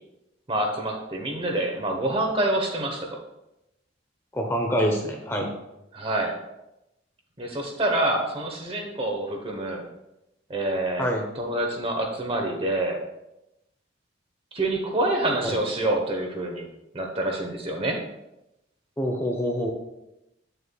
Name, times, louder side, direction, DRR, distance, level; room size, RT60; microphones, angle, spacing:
voice 1, 0.5-3.1 5.9-6.3 7.4-9.8 10.5-11.1 11.4-13.0 14.5-16.7 16.9-18.0, right 1 dB, 30° right, 2 dB, 1.0 m, -27 dB
voice 2, 4.3-5.5 11.0-11.2 15.4-15.6 19.0-19.7, equal, 15° left, 2 dB, 0.8 m, -25 dB
9.0 x 6.7 x 2.3 m, 0.91 s
head